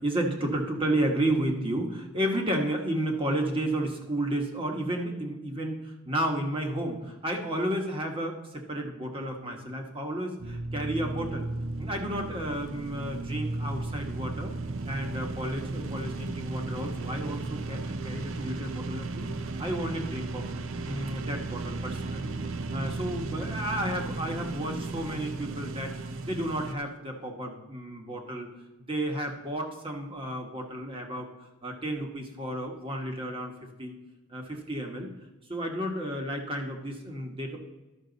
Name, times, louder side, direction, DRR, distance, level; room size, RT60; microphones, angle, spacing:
voice 1, 0.0-11.5 11.8-14.5 14.8-20.4 20.8-22.4 22.7-28.5 28.9-31.3 31.6-33.5 33.8-33.9 34.3-35.1 35.5-37.6, right 1 dB, 25° right, 2 dB, 1.3 m, -32 dB
sound 1, 10.4-26.7, right 2 dB, 65° right, 0.6 m, -35 dB
12.0 x 6.2 x 4.0 m, 1.1 s
head